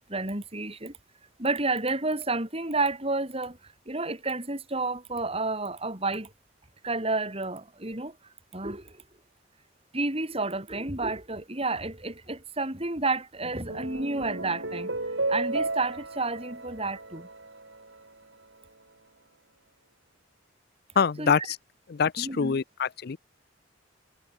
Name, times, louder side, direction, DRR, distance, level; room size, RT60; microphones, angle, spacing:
voice 1, 0.1-1.0 1.4-6.3 6.8-8.2 8.5-9.0 9.9-17.3 21.2-21.3 22.2-22.6, right 3 dB, 30° right, 5.3 m, -30 dB
sound 1, 13.4-18.0, right 2 dB, 75° right, 7.9 m, -33 dB
voice 2, 21.0-21.6 21.9-23.2, left 6 dB, 55° left, 0.5 m, -25 dB
head